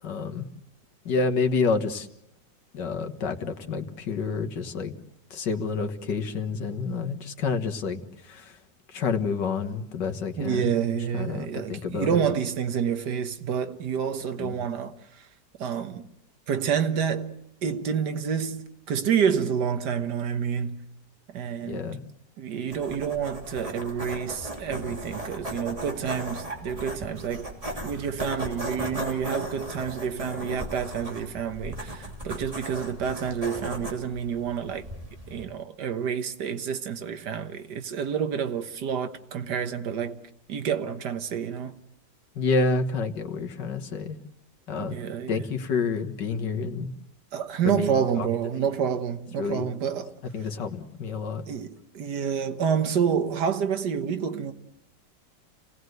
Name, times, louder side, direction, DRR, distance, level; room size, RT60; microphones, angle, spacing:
voice 1, 0.0-0.5 1.1-2.1 2.7-5.0 5.3-8.6 8.9-10.7 11.1-12.3 14.4-14.6 21.6-22.0 42.4-44.2 44.7-45.0 45.3-46.9 47.6-48.3 49.4-49.7 50.3-51.5, left 4 dB, 80° left, 2.2 m, -29 dB
voice 2, 10.4-15.3 15.6-16.1 16.5-17.3 17.6-20.8 21.3-21.9 22.4-27.5 27.8-34.9 35.3-40.2 40.5-41.8 44.8-45.4 47.3-50.2 51.5-54.5, right 7 dB, 75° right, 1.8 m, -28 dB
sound 1, 22.7-35.4, right 1 dB, 20° right, 2.9 m, -37 dB
28.5 x 18.0 x 8.1 m
omnidirectional pair, 1.8 m